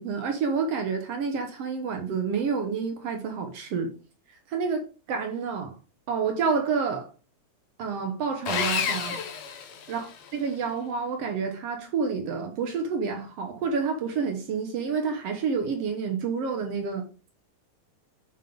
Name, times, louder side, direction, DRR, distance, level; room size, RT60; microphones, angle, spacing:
voice 1, 0.0-3.9 4.5-5.8 6.1-7.1 7.8-9.2 9.9-10.1 10.3-17.1, right 5 dB, 60° right, 2.0 m, -29 dB
Sawing, 8.5-10.4, left 7 dB, 65° left, 2.1 m, -30 dB
7.7 x 3.7 x 5.3 m
omnidirectional pair, 3.4 m